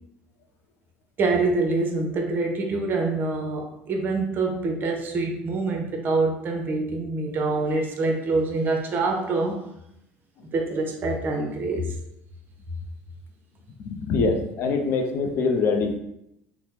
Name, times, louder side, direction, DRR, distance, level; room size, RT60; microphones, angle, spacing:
voice 1, 1.2-9.6 10.5-11.9, right 3 dB, 40° right, 2 dB, 0.7 m, -25 dB
voice 2, 13.8-16.0, left 4 dB, 55° left, 4 dB, 0.5 m, -24 dB
2.9 x 2.0 x 3.3 m, 0.81 s
hypercardioid pair, 75°, 5 cm